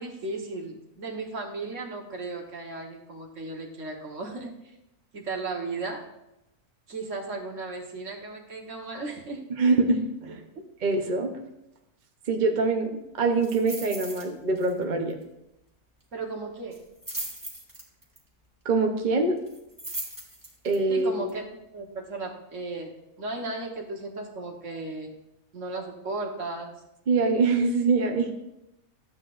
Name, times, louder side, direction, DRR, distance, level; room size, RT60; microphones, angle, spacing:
voice 1, 0.0-4.5 5.1-6.0 6.9-9.4 10.3-10.6 16.1-16.8 20.9-21.5 21.7-22.9 23.2-25.1 25.5-26.7, right 3 dB, 60° right, 1 dB, 1.6 m, -35 dB
voice 2, 9.6-10.4 10.8-11.4 12.3-12.9 13.2-15.2 18.6-19.4 20.6-21.1 27.1-28.3, right 3 dB, 40° right, 2 dB, 0.8 m, -24 dB
sound 1, 13.4-14.3 14.6-14.8 15.1-15.2 16.7-18.2 19.5-20.8 21.3-21.4, right 1 dB, 15° right, 1.6 m, -38 dB
12.5 x 8.1 x 2.5 m, 0.87 s
omnidirectional pair, 1.5 m